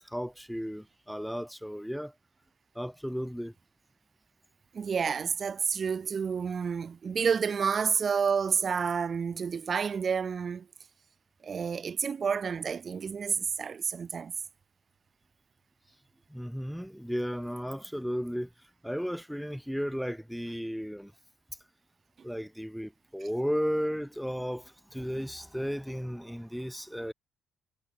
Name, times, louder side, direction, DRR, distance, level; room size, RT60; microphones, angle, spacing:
voice 1, 0.0-2.1 2.7-3.5 16.3-18.5 18.8-21.1 22.2-27.1, equal, ahead, 1.6 m, -34 dB
voice 2, 4.7-10.7 11.4-14.3, right 6 dB, 45° right, 0.9 m, -29 dB
cardioid pair, 90°, 0 cm